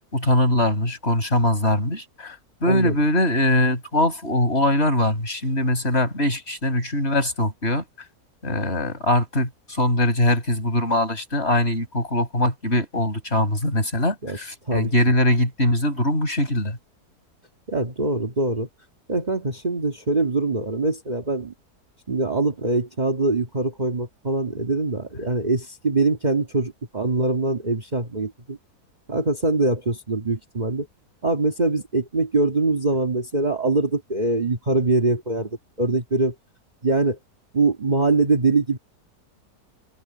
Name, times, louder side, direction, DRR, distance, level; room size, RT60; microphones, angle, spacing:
voice 1, 0.1-7.8 8.4-16.8, left 1 dB, 40° left, 6.7 m, -22 dB
voice 2, 2.7-3.0 14.2-14.4 14.7-14.9 17.7-18.7 19.1-21.5 22.1-28.6 29.1-30.9 31.2-36.3 36.8-37.2 37.5-38.8, right 3 dB, 30° right, 1.8 m, -23 dB
omnidirectional pair, 1.6 m